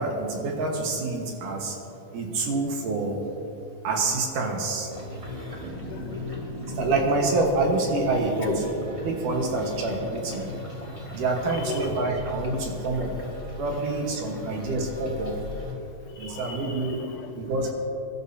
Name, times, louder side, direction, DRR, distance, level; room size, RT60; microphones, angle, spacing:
voice 1, 0.0-1.8 2.1-3.2 3.8-4.9 6.8-8.5 9.0-10.5 11.1-13.1 13.6-15.4 16.2-17.0 17.4-17.7, right 3 dB, 70° right, 1 dB, 2.7 m, -27 dB
sound 1, 4.9-15.7, left 1 dB, 15° right, 1.3 m, -37 dB
voice 2, 5.8-6.3 8.4-8.6 9.5-9.7 10.4-10.5 11.5-12.1 14.2-14.3 15.8-17.4, left 5 dB, 70° left, 2 dB, 2.5 m, -38 dB
22.0 x 12.0 x 2.7 m, 2.8 s
omnidirectional pair, 4.1 m